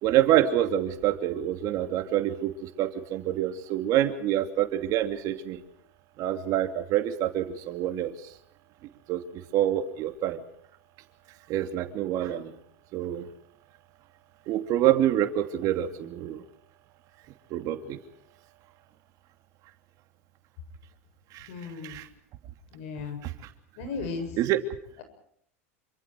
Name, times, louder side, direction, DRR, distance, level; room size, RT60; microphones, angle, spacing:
voice 1, 0.0-5.6 6.2-8.1 9.1-9.2 9.5-10.4 11.5-12.6 12.9-13.3 14.5-16.4 17.5-18.0 21.3-21.5 21.8-22.1 23.2-23.3 24.4-24.6, right 12 dB, 50° right, 7 dB, 2.9 m, -26 dB
voice 2, 21.5-22.0 22.7-23.2 23.8-24.3, left 4 dB, 65° left, 8 dB, 7.5 m, -35 dB
27.5 x 25.5 x 4.7 m, 0.67 s
hypercardioid pair, 100°, 8 cm